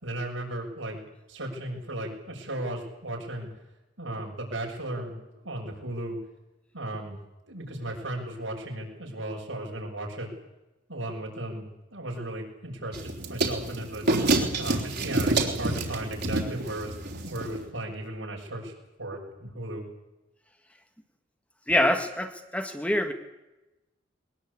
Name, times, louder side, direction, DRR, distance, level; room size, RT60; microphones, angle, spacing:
voice 1, 0.0-1.0 1.3-3.5 4.0-5.2 5.4-6.2 6.7-7.2 7.5-10.3 10.9-14.1 14.6-16.9 17.2-18.7 19.0-19.8, right 1 dB, 85° right, 0 dB, 6.7 m, -35 dB
sound 1, 12.9-17.7, right 2 dB, 60° right, 3.7 m, -28 dB
voice 2, 21.7-23.1, left 1 dB, 5° left, 6 dB, 1.6 m, -25 dB
21.5 x 20.5 x 8.4 m, 1.0 s
head